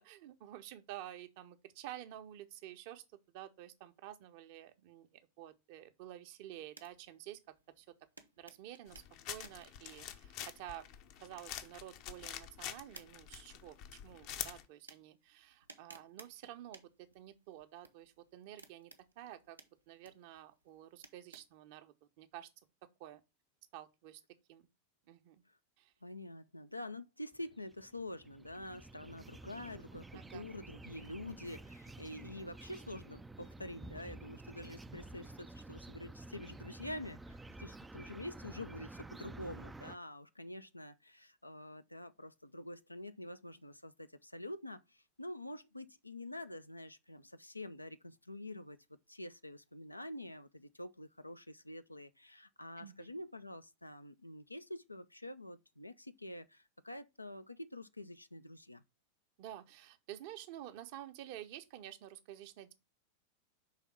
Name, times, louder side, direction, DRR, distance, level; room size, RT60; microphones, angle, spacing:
voice 1, 0.0-7.4 7.8-7.9 8.4-10.9 11.2-19.6 19.9-22.5 22.8-23.2 23.7-24.2 24.5-24.6 25.1-25.4 25.8-25.9 30.1-30.4 52.8-53.1 59.4-62.7, right 12 dB, 50° right, 0.7 m, -50 dB
sound 1, 6.5-21.6, right 3 dB, 80° right, 0.8 m, -62 dB
sound 2, 8.9-14.6, left 11 dB, 45° left, 0.7 m, -46 dB
voice 2, 26.0-48.8 49.1-58.8, left 1 dB, 85° left, 0.5 m, -47 dB
sound 3, 27.3-40.0, right 2 dB, 10° right, 0.3 m, -51 dB
5.6 x 3.5 x 5.9 m
figure-of-eight pair, 90°, 0 cm